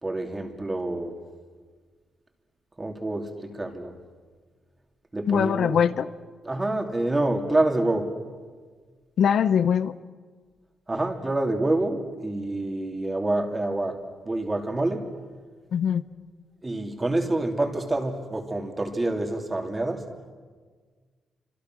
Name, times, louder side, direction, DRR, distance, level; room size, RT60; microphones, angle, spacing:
voice 1, 0.0-1.2 2.8-3.9 5.1-5.8 6.4-8.2 10.9-15.1 16.6-20.1, right 2 dB, 20° right, 3.0 m, -27 dB
voice 2, 5.3-6.1 9.2-9.9 15.7-16.0, left 8 dB, 70° left, 0.8 m, -22 dB
29.0 x 26.5 x 6.3 m
cardioid pair, 105°, 0 cm